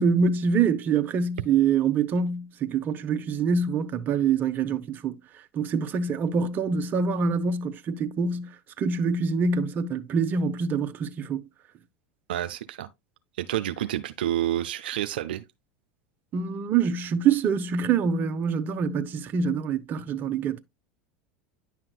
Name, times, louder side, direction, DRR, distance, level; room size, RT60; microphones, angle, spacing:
voice 1, 0.0-5.1 5.5-8.5 8.8-11.4 16.3-20.6, right 5 dB, 40° right, 0.8 m, -25 dB
voice 2, 12.3-12.9 13.4-15.4, right 12 dB, 80° right, 0.5 m, -29 dB
9.9 x 5.8 x 2.3 m
hypercardioid pair, 95°, 5 cm